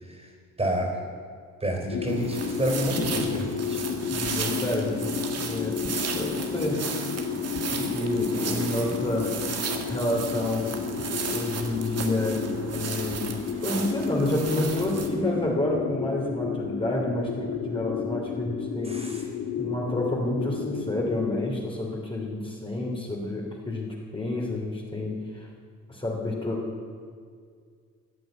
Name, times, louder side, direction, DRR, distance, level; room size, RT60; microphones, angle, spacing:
voice 1, 0.6-1.0 1.6-3.8 7.7-7.9 8.3-8.9 18.8-19.2, right 1 dB, 20° right, 2 dB, 3.8 m, -29 dB
sound 1, 1.9-21.6, left 6 dB, 70° left, 1.4 m, -32 dB
sound 2, 2.1-15.1, right 5 dB, 55° right, 2.0 m, -35 dB
voice 2, 4.1-6.9 7.6-9.4 9.9-10.8 11.3-12.5 12.7-19.0 19.6-25.5 25.9-26.6, left 1 dB, 15° left, -2 dB, 3.1 m, -29 dB
15.0 x 9.2 x 9.3 m, 2.1 s
cardioid pair, 90°, 30 cm